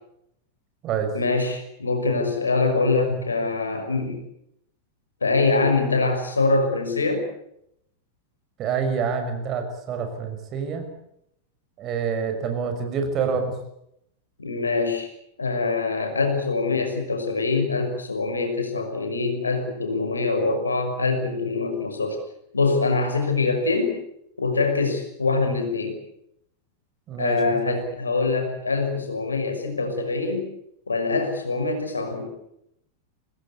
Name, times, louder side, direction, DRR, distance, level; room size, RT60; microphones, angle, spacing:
voice 1, 1.1-4.2 5.2-7.3 14.4-15.1 15.4-22.2 22.5-24.0 24.4-26.0 27.2-30.5 30.9-32.3, left 3 dB, 75° left, 5 dB, 6.0 m, -24 dB
voice 2, 8.6-10.8 11.8-13.5 27.1-27.8, right 6 dB, 35° right, 6 dB, 6.5 m, -27 dB
26.0 x 19.5 x 8.4 m, 0.78 s
figure-of-eight pair, 90°, 0 cm